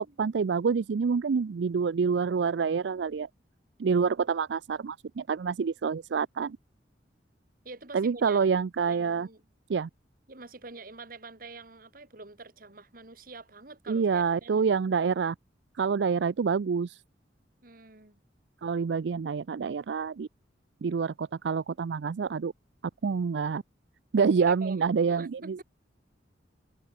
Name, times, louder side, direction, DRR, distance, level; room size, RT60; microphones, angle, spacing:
voice 1, 0.0-3.3 3.8-6.6 7.9-9.3 9.7-9.9 13.9-15.4 15.8-17.0 18.6-20.3 20.8-22.5 23.0-23.6 24.1-25.6, right 5 dB, 75° right, 0.4 m, -27 dB
voice 2, 7.6-8.5 8.8-9.4 10.3-14.7 17.6-18.2 24.3-25.6, right 3 dB, 50° right, 2.4 m, -46 dB
open air
head